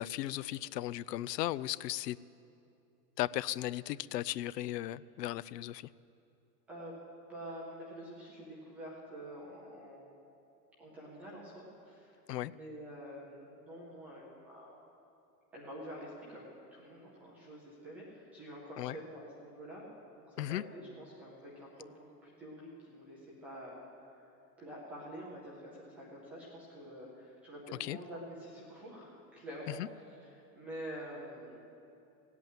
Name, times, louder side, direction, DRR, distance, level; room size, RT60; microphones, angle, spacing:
voice 1, 0.0-2.2 3.2-5.9 12.3-12.5 18.8-19.0 20.4-20.6 27.8-28.0 29.7-29.9, left 14 dB, 75° left, 19 dB, 0.5 m, -36 dB
voice 2, 6.7-7.0 7.3-10.1 10.8-14.7 15.5-19.9 20.1-31.6, equal, 5° right, -6 dB, 0.4 m, -47 dB
16.5 x 8.3 x 9.0 m, 2.7 s
supercardioid pair, 155°, 49 cm